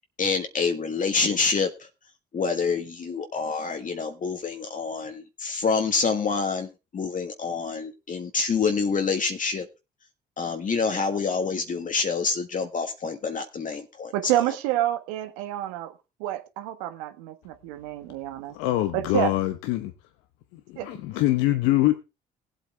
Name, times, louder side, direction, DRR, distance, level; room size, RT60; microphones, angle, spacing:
voice 1, 0.2-1.9 2.3-9.7 10.4-14.1, left 5 dB, 45° left, 1.6 m, -27 dB
voice 2, 14.1-15.9 16.2-18.5 18.9-19.3 20.8-20.9, right 14 dB, 85° right, 1.4 m, -28 dB
voice 3, 18.5-19.9 20.5-21.9, left 15 dB, 80° left, 1.0 m, -24 dB
19.0 x 8.3 x 3.5 m
hypercardioid pair, 55°, 19 cm